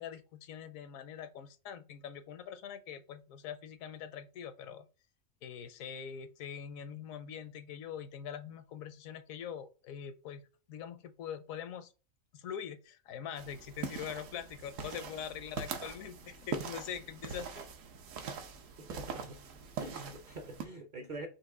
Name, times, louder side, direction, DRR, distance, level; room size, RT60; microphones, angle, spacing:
voice 1, 0.0-4.9 5.4-11.9 12.3-17.6, left 8 dB, 75° left, 1.0 m, -43 dB
sound 1, 13.4-20.7, right 6 dB, 70° right, 1.0 m, -42 dB
voice 2, 18.8-19.4 19.8-21.3, right 2 dB, 45° right, 0.6 m, -45 dB
4.7 x 2.6 x 3.6 m
omnidirectional pair, 1.5 m